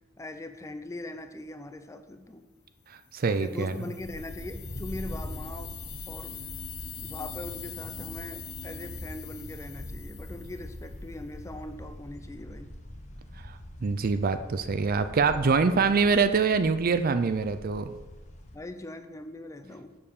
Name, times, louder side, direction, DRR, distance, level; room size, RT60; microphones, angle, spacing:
voice 1, 0.2-2.5 3.3-5.7 6.1-6.4 7.0-12.7 18.5-20.0, left 2 dB, 15° left, 9 dB, 0.4 m, -41 dB
sound 1, 3.1-11.0, left 8 dB, 65° left, 1.1 m, -44 dB
voice 2, 3.1-3.8 13.4-17.9, right 4 dB, 45° right, 10 dB, 0.4 m, -25 dB
sound 2, 4.0-18.6, left 1 dB, 35° left, 0.9 m, -43 dB
6.9 x 5.5 x 6.5 m, 1.2 s
head